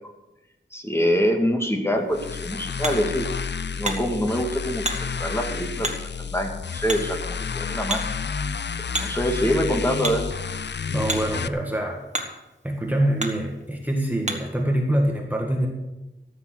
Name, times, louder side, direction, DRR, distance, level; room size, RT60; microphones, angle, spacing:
voice 1, 0.7-3.3 3.7-4.8 5.2-5.9 6.2-8.1 9.0-10.2, equal, 10° left, 2 dB, 2.2 m, -25 dB
Hammer, 2.0-14.6, right 2 dB, 35° right, 2.0 m, -36 dB
sound 1, 2.1-11.5, left 6 dB, 60° left, 0.5 m, -30 dB
voice 2, 10.9-12.0 12.6-15.7, right 1 dB, 10° right, 0 dB, 1.7 m, -24 dB
14.0 x 7.3 x 7.9 m, 1.0 s
wide cardioid pair, 80°, 20 cm